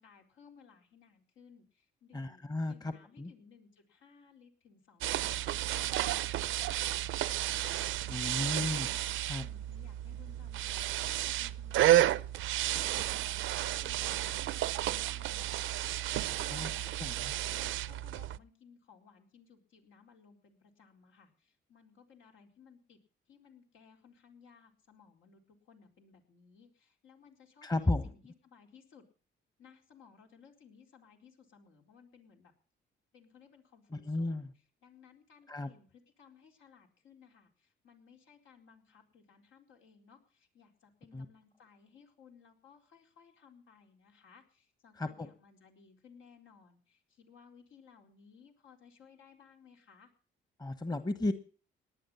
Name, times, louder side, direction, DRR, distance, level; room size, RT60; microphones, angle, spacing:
voice 1, 0.0-2.4 2.7-12.2 12.5-13.4 13.8-15.9 16.2-16.9 17.5-23.0 23.3-29.0 29.6-32.5 33.1-34.5 34.8-50.1, left 6 dB, 80° left, 2 dB, 4.2 m, -60 dB
voice 2, 2.1-3.3 8.1-8.9 9.3-9.4 16.4-16.7 17.0-17.3 27.6-28.1 33.9-34.5 35.5-35.7 41.1-41.2 45.0-45.3 50.6-51.3, left 2 dB, 20° left, 10 dB, 1.2 m, -34 dB
sound 1, 5.0-18.4, right 13 dB, 80° right, 0.6 m, -32 dB
18.5 x 11.0 x 5.6 m, 0.41 s
cardioid pair, 90°, 20 cm